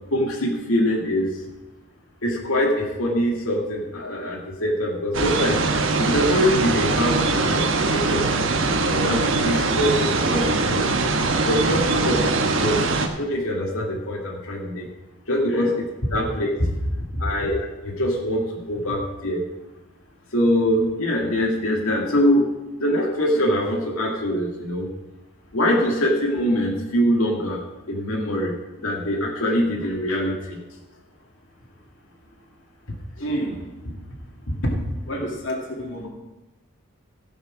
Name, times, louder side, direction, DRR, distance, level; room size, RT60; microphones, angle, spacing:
voice 1, 0.1-1.3 2.2-5.6 6.0-8.3 8.7-10.9 11.4-12.8 13.2-14.9 15.3-15.8 16.1-16.5 17.2-19.4 20.3-22.5 22.8-24.9 25.5-27.6 27.9-30.6, equal, 85° left, -2 dB, 2.1 m, -23 dB
sound 1, 5.1-13.1, right 3 dB, 65° right, 1.2 m, -22 dB
voice 2, 33.2-33.6 34.5-34.8 35.1-36.1, equal, 60° left, 0 dB, 2.3 m, -26 dB
15.5 x 6.3 x 6.2 m, 1.1 s
head